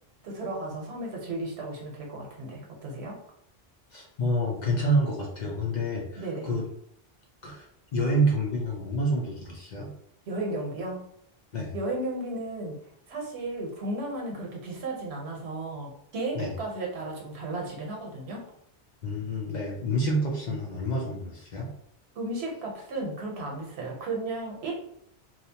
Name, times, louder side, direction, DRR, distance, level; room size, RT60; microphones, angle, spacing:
voice 1, 0.2-3.2 6.2-6.5 10.3-11.0 11.7-12.8 13.1-18.4 22.2-24.7, right 2 dB, 85° right, -1 dB, 1.0 m, -34 dB
voice 2, 3.9-6.6 7.4-7.7 7.9-9.9 11.5-11.7 16.3-16.5 19.0-21.7, right 1 dB, 50° left, -1 dB, 0.6 m, -28 dB
2.7 x 2.0 x 2.7 m, 0.69 s
omnidirectional pair, 1.1 m